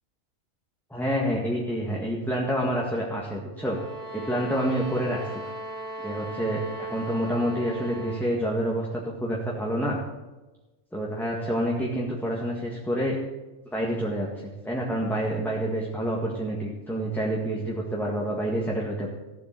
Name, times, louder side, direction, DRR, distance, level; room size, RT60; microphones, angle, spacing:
voice 1, 0.9-3.8 4.1-5.4 6.0-10.0 10.9-13.2 13.7-19.1, equal, ahead, -3 dB, 1.7 m, -28 dB
sound 1, 3.6-8.3, right 1 dB, 35° right, 4.2 m, -37 dB
15.5 x 7.8 x 7.7 m, 1.1 s
omnidirectional pair, 1.4 m